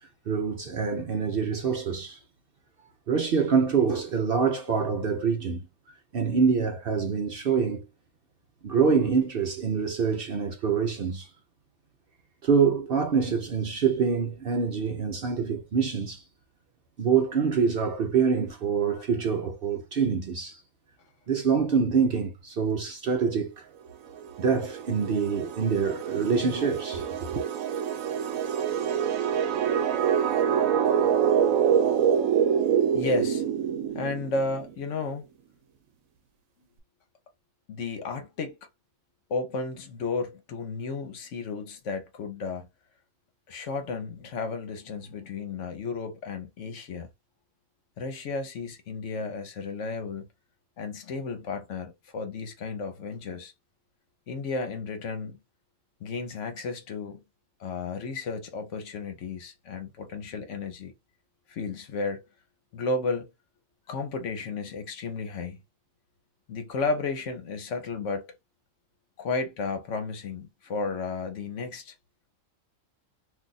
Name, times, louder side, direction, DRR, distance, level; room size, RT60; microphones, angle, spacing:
voice 1, 0.3-2.2 3.1-5.6 6.1-7.9 8.6-11.3 12.4-16.2 17.0-20.6 21.3-23.6 24.4-27.1, right 6 dB, 55° right, 0.7 m, -25 dB
sound 1, 24.2-34.7, right 8 dB, 80° right, 1.0 m, -26 dB
voice 2, 32.9-33.4 33.9-35.3 37.7-38.6 39.3-42.7 43.5-47.1 48.0-50.3 50.8-53.5 54.3-55.4 56.0-57.2 57.6-60.9 61.5-62.3 62.7-63.3 63.9-65.6 66.5-68.3 69.2-71.9, left 3 dB, 65° left, 1.1 m, -33 dB
2.6 x 2.4 x 3.9 m
omnidirectional pair, 1.4 m